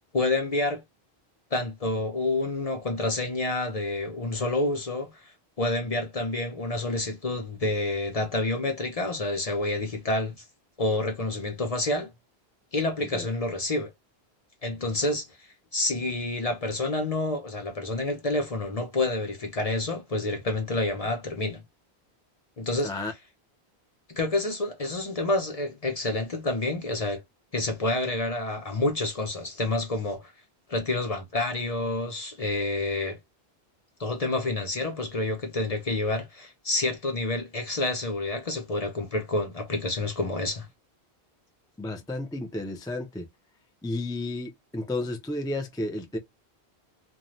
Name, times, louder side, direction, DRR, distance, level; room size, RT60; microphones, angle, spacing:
voice 1, 0.1-0.8 1.5-5.2 5.6-10.4 10.8-12.1 12.7-13.9 14.6-15.3 15.7-21.6 22.6-22.9 24.1-27.2 27.5-30.3 30.7-33.2 34.0-40.7, left 2 dB, 40° left, 0.6 m, -28 dB
voice 2, 41.8-43.3 43.8-46.2, left 2 dB, 5° left, 0.3 m, -32 dB
2.7 x 2.2 x 3.0 m
omnidirectional pair, 1.1 m